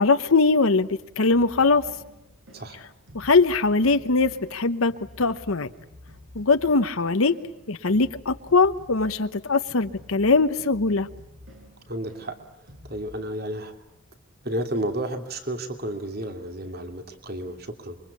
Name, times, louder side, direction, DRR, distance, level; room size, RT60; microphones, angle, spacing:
voice 1, 0.0-1.8 3.1-5.7 6.3-7.4 7.7-11.1, left 3 dB, 80° left, 9 dB, 1.0 m, -21 dB
sound 1, 1.3-13.2, left 1 dB, 70° right, 8.0 m, -49 dB
voice 2, 11.9-12.4 12.8-13.7 14.4-18.0, right 1 dB, 45° right, 6 dB, 2.8 m, -32 dB
26.5 x 24.0 x 8.5 m, 0.91 s
head